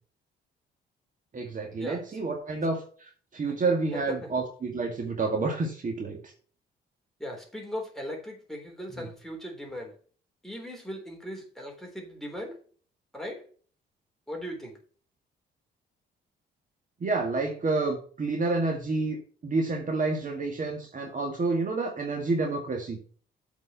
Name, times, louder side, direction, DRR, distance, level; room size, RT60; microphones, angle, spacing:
voice 1, 1.3-2.8 3.3-6.2 9.0-9.1 17.0-19.2 19.4-23.0, right 3 dB, 40° right, 2 dB, 2.2 m, -29 dB
voice 2, 7.2-9.9 10.4-12.6 13.1-13.5 14.3-14.8, equal, ahead, 1 dB, 3.7 m, -38 dB
8.3 x 5.2 x 5.8 m, 0.43 s
cardioid pair, 90°, 20 cm